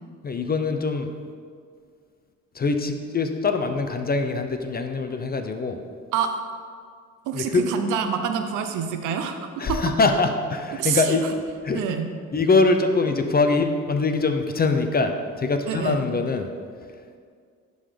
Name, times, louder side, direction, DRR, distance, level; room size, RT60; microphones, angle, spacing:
voice 1, 0.2-1.1 2.5-5.8 7.3-7.7 9.6-11.2 11.6-12.0 12.3-16.5, left 3 dB, 30° left, 6 dB, 0.6 m, -23 dB
voice 2, 7.3-9.8 10.7-11.2 11.7-12.1 15.7-16.0, right 7 dB, 90° right, 6 dB, 0.8 m, -27 dB
11.0 x 3.9 x 5.1 m, 2.1 s
cardioid pair, 90°, 30 cm